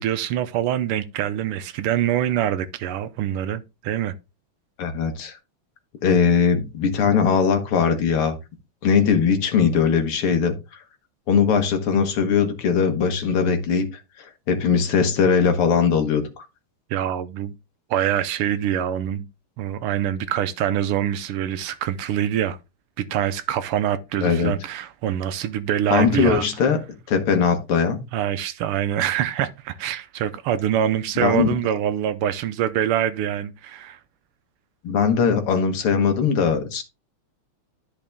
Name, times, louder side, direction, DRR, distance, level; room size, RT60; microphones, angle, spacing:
voice 1, 0.0-4.1 16.9-17.6 17.9-19.3 19.6-22.6 23.0-26.5 28.1-34.0, right 10 dB, 85° right, 1.6 m, -25 dB
voice 2, 4.8-5.4 6.0-8.4 8.8-10.8 11.3-13.9 14.2-16.5 24.2-24.5 25.9-26.8 27.1-28.0 31.2-31.6 34.8-36.8, left 6 dB, 90° left, 2.4 m, -20 dB
11.0 x 5.3 x 3.6 m
omnidirectional pair, 2.4 m